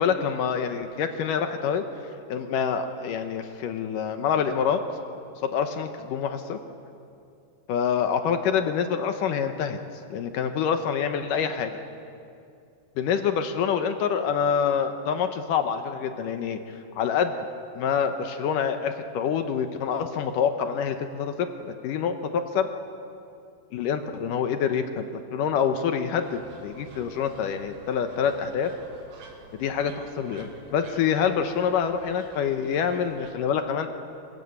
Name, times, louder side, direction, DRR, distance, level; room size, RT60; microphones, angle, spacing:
voice 1, 0.0-1.8 2.3-4.8 5.4-6.6 7.7-9.8 10.1-11.8 13.0-17.4 17.8-22.7 23.7-28.7 29.5-33.9, left 7 dB, 70° left, 7 dB, 2.3 m, -26 dB
sound 1, 26.2-33.3, right 3 dB, 55° right, 3.4 m, -49 dB
27.0 x 15.5 x 8.4 m, 2.5 s
omnidirectional pair, 4.5 m